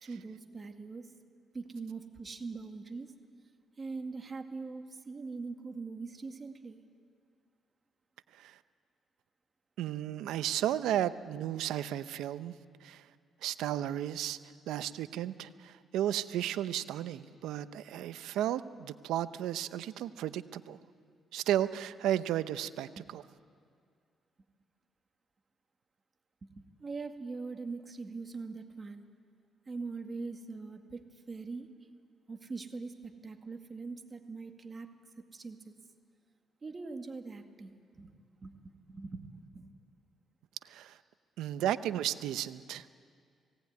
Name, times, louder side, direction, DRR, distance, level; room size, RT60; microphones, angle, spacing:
voice 1, 0.0-1.1 1.5-3.1 3.8-6.8 23.0-23.1 26.4-29.0 29.7-31.7 32.3-34.9 35.3-35.7 36.6-38.1 38.4-39.7, right 4 dB, 35° right, 5 dB, 2.0 m, -42 dB
voice 2, 9.8-12.5 12.8-13.1 13.4-14.4 14.7-20.8 21.3-23.2 40.6-41.0 41.4-42.9, right 12 dB, 85° right, 13 dB, 0.7 m, -34 dB
19.0 x 17.5 x 9.5 m, 2.2 s
cardioid pair, 90°, 0 cm